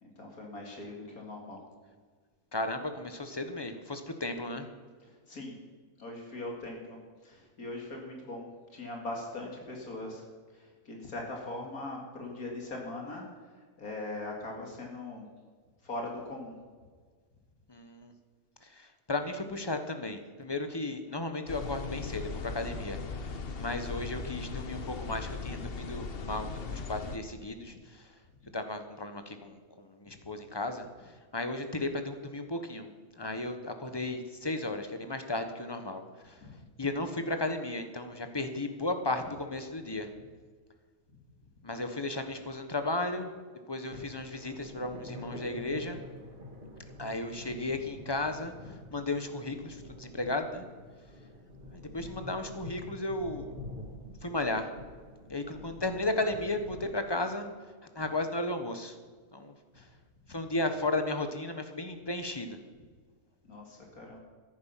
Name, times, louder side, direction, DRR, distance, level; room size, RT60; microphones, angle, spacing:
voice 1, 0.0-1.6 5.3-5.5 6.0-8.5 8.7-10.2 10.5-13.2 13.8-15.3 15.8-16.5 36.4-36.5 56.9-57.0 60.3-60.4 63.4-64.2, left 2 dB, 65° left, 0 dB, 2.9 m, -40 dB
voice 2, 2.5-4.7 17.7-18.1 18.7-23.0 23.6-28.0 28.5-30.9 31.3-32.9 33.2-36.4 36.8-40.1 41.6-43.3 43.7-46.0 47.0-48.5 48.9-50.6 51.9-53.5 54.2-54.7 55.3-57.5 57.9-58.9 59.3-59.5 60.3-62.6, left 2 dB, 20° left, 7 dB, 1.1 m, -34 dB
sound 1, 21.5-27.2, left 4 dB, 45° left, 1.0 m, -38 dB
sound 2, 43.9-56.9, left 1 dB, 35° right, 2.0 m, -47 dB
14.0 x 11.0 x 5.8 m, 1.5 s
omnidirectional pair, 1.6 m